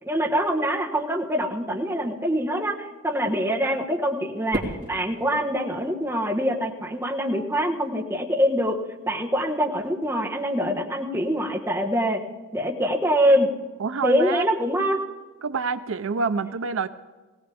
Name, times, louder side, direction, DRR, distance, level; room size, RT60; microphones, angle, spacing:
voice 1, 0.0-8.8 9.1-12.2 12.5-13.5 14.0-15.0, equal, 10° right, -1 dB, 1.4 m, -24 dB
Fireworks, 4.5-6.8, right 1 dB, 40° right, 2.8 m, -35 dB
voice 2, 13.8-14.5 15.4-16.9, right 4 dB, 75° right, 11 dB, 0.5 m, -27 dB
19.5 x 17.5 x 3.5 m, 1.2 s
head